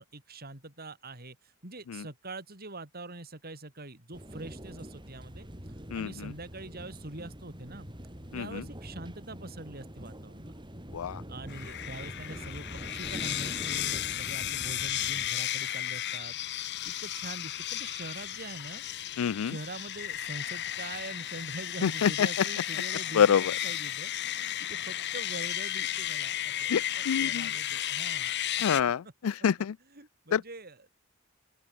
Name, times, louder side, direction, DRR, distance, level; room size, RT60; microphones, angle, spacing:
voice 1, 0.0-5.5 5.9-7.9 8.3-10.5 11.3-18.8 19.4-28.6 29.0-29.1 29.9-30.9, right 2 dB, 45° right, 4.7 m, -44 dB
sound 1, 4.1-15.3, equal, 20° right, 7.3 m, -44 dB
voice 2, 5.9-6.3 8.3-8.6 10.9-11.2 19.2-19.6 21.8-22.3 23.1-23.4 26.7-27.5 28.6-29.8 30.3-30.4, left 7 dB, 80° left, 0.4 m, -26 dB
sound 2, 11.5-28.8, left 12 dB, 55° left, 1.1 m, -34 dB
open air
head